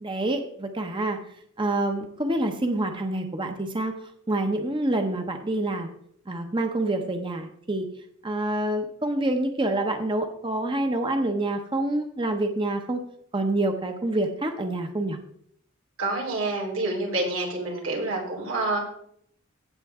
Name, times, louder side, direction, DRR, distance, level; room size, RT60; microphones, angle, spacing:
voice 1, 0.0-1.2 1.6-3.9 4.3-5.9 6.3-7.9 8.2-13.0 13.3-15.2, right 1 dB, 25° right, 5 dB, 0.9 m, -27 dB
voice 2, 16.0-18.9, right 2 dB, 90° right, -1 dB, 3.9 m, -28 dB
16.0 x 6.8 x 3.6 m, 0.69 s
head